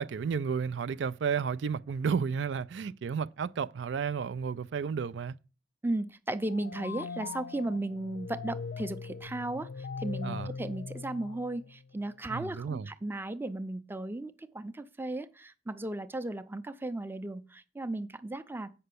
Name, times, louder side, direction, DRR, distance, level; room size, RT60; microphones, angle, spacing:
voice 1, 0.0-5.3 10.2-10.5 12.3-12.9, right 6 dB, 75° right, 0.4 m, -32 dB
voice 2, 5.8-18.7, right 2 dB, 10° right, 0.5 m, -35 dB
sound 1, 6.4-11.9, left 5 dB, 90° left, 0.5 m, -41 dB
7.8 x 5.5 x 6.8 m
head